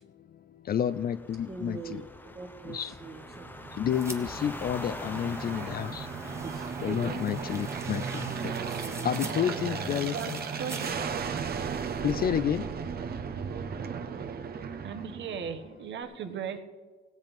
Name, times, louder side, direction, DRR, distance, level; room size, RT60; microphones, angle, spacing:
voice 1, 0.5-2.0 2.6-2.9 3.8-6.4 6.8-8.5 9.0-10.4 12.0-12.7 13.1-13.3 13.7-13.8 14.4-15.2 16.0-16.6, left 9 dB, 50° left, 13 dB, 0.4 m, -31 dB
sound 1, 0.8-10.3, left 1 dB, 10° left, 0.7 m, -46 dB
voice 2, 1.4-3.7 6.4-9.1 9.5-9.6, right 3 dB, 30° right, -1 dB, 1.5 m, -43 dB
Aircraft, 3.0-15.8, right 6 dB, 50° right, 1.1 m, -36 dB
sound 2, 3.9-10.9, right 2 dB, 15° right, 1.4 m, -42 dB
voice 3, 10.6-11.8 14.8-16.6, right 7 dB, 70° right, 7 dB, 1.3 m, -38 dB
17.0 x 8.1 x 5.3 m, 1.4 s
cardioid pair, 90°, 20 cm